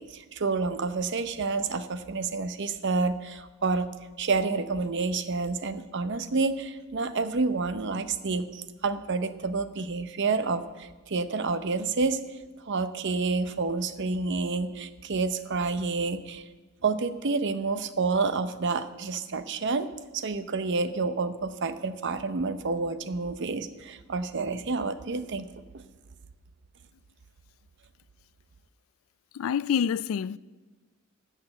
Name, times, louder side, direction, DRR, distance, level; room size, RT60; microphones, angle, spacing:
voice 1, 0.0-3.9 4.2-12.2 12.7-16.4 16.8-19.9 20.1-25.5 25.7-25.8, right 4 dB, 60° right, 0.7 m, -29 dB
voice 2, 29.3-30.4, left 7 dB, 80° left, 0.3 m, -27 dB
13.0 x 6.7 x 7.8 m
head